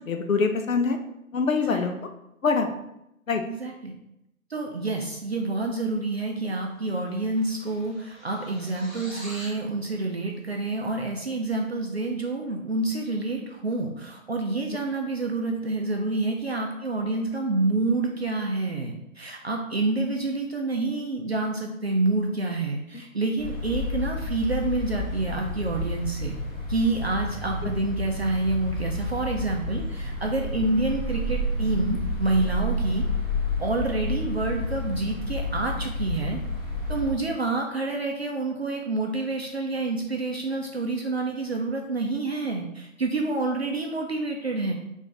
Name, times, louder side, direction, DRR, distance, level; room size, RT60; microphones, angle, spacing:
voice 1, 0.1-1.0 1.3-1.9 2.4-2.7 3.3-3.4 27.6-27.7, left 4 dB, 70° left, 6 dB, 0.6 m, -24 dB
voice 2, 3.5-3.9 4.5-26.3 26.7-33.0 33.6-36.4 36.9-44.7, right 2 dB, 50° right, 1 dB, 0.5 m, -28 dB
sound 1, 6.7-6.8 6.9-9.6, equal, 5° left, 0.6 m, -44 dB
sound 2, 23.4-37.1, left 1 dB, 25° left, 1.4 m, -30 dB
3.9 x 2.5 x 3.2 m, 0.83 s
figure-of-eight pair, 150°, 42 cm